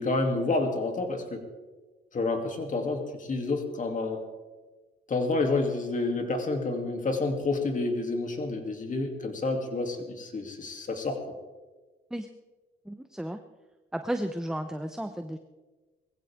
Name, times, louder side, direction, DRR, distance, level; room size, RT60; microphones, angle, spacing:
voice 1, 0.0-1.4 2.1-4.2 5.1-11.3, left 3 dB, 40° left, 4 dB, 2.7 m, -29 dB
voice 2, 12.9-13.4 13.9-15.4, right 1 dB, 5° right, 8 dB, 0.7 m, -33 dB
20.5 x 15.5 x 3.6 m, 1.3 s
cardioid pair, 90°, 20 cm